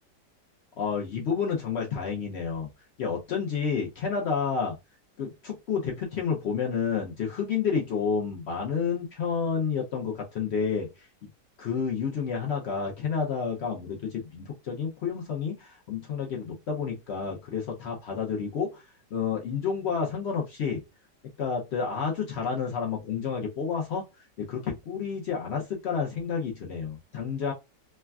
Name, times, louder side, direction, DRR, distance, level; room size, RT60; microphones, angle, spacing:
voice 1, 0.8-2.7 3.0-4.8 5.2-11.1 11.6-18.8 19.1-20.8 21.4-24.0 24.4-27.5, left 6 dB, 80° left, -1 dB, 0.5 m, -30 dB
3.2 x 2.2 x 2.2 m, 0.23 s
omnidirectional pair, 1.8 m